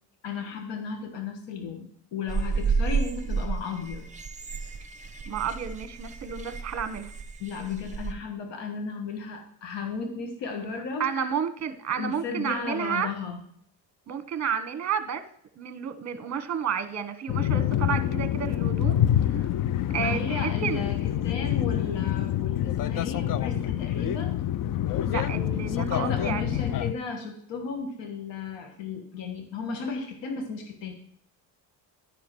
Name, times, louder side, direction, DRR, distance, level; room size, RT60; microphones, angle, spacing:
voice 1, 0.2-4.1 7.4-11.3 11.9-13.4 20.0-24.3 25.7-30.9, left 5 dB, 70° left, 5 dB, 1.5 m, -35 dB
sound 1, 2.3-8.1, right 5 dB, 15° right, 1.1 m, -31 dB
voice 2, 5.2-7.1 11.0-13.1 14.1-15.2 15.6-19.0 19.3-19.5 19.9-20.8 25.0-26.6, right 7 dB, 40° right, 9 dB, 1.1 m, -31 dB
sound 2, 17.3-26.9, left 11 dB, 50° left, 0.5 m, -26 dB
11.5 x 5.0 x 6.1 m, 0.67 s
cardioid pair, 100°, 44 cm